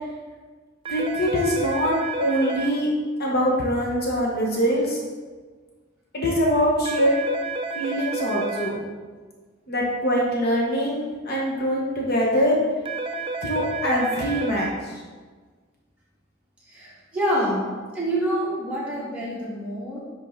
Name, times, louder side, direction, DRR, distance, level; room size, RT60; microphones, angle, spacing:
voice 1, 0.9-2.9 3.2-5.0 6.1-7.2 7.7-8.8 9.7-12.6 13.4-14.9, equal, 50° left, -3 dB, 1.0 m, -23 dB
sound 1, 0.9-2.7 6.9-8.7 12.9-14.7, right 3 dB, 25° right, 0.4 m, -30 dB
voice 2, 16.6-17.7 17.9-20.0, equal, 5° right, -9 dB, 2.2 m, -27 dB
10.0 x 3.7 x 3.8 m, 1.4 s
head